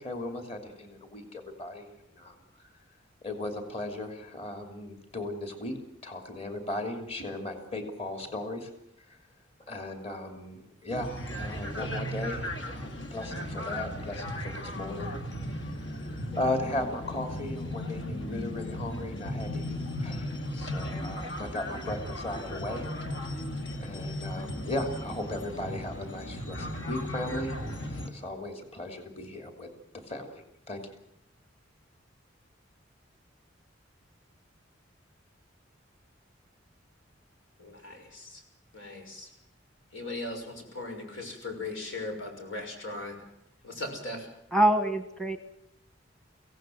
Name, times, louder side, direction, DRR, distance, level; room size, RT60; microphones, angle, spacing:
voice 1, 0.0-2.4 3.2-5.8 6.0-8.7 9.1-9.2 9.7-15.1 15.8-22.8 23.8-27.5 27.8-29.7 29.9-30.9, left 1 dB, 30° left, 5 dB, 2.9 m, -37 dB
sound 1, 10.9-28.1, left 1 dB, 70° left, 2.3 m, -36 dB
voice 2, 37.6-38.4 38.7-39.3 39.9-43.2 43.6-44.2, left 2 dB, 85° left, 4 dB, 6.2 m, -38 dB
voice 3, 44.5-45.4, right 1 dB, 5° left, 8 dB, 1.2 m, -24 dB
24.5 x 17.0 x 7.8 m, 0.80 s
head